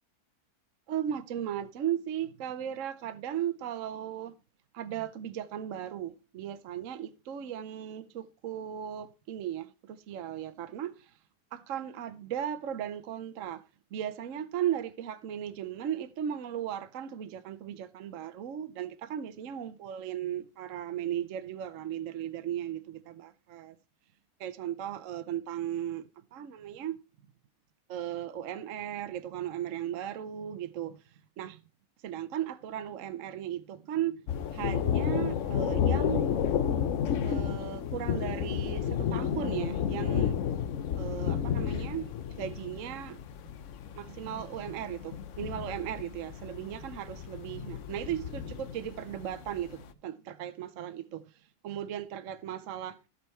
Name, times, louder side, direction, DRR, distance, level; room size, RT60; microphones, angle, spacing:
voice 1, 0.9-4.3 4.7-11.0 11.5-13.6 13.9-23.7 24.4-26.0 26.3-27.0 27.9-31.0 31.4-31.6 32.0-34.2 34.5-36.3 37.2-40.4 41.0-42.1 42.4-43.2 44.0-51.2 51.6-53.0, right 10 dB, 60° right, 1.0 m, -36 dB
Thunder, 34.3-49.8, left 8 dB, 60° left, 0.9 m, -32 dB
15.5 x 5.6 x 4.4 m
omnidirectional pair, 1.7 m